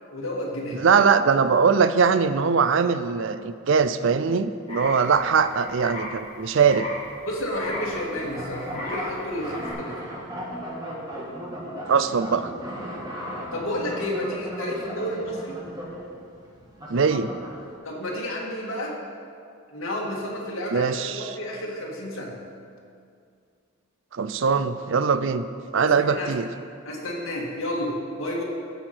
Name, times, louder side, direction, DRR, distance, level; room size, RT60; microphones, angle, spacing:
voice 1, 0.1-0.9 7.3-10.1 13.5-15.6 17.8-19.0 19.7-22.4 25.8-26.3 26.9-28.4, left 1 dB, 75° left, -2 dB, 2.0 m, -31 dB
voice 2, 0.7-6.9 11.9-12.5 16.9-17.3 20.7-21.3 24.1-25.5 25.7-26.5, right 5 dB, 60° right, 12 dB, 0.5 m, -21 dB
sound 1, 4.7-9.7, left 1 dB, 25° left, 2.4 m, -37 dB
sound 2, 7.6-17.7, equal, 20° right, 1.5 m, -36 dB
13.0 x 8.0 x 4.5 m, 2.3 s
head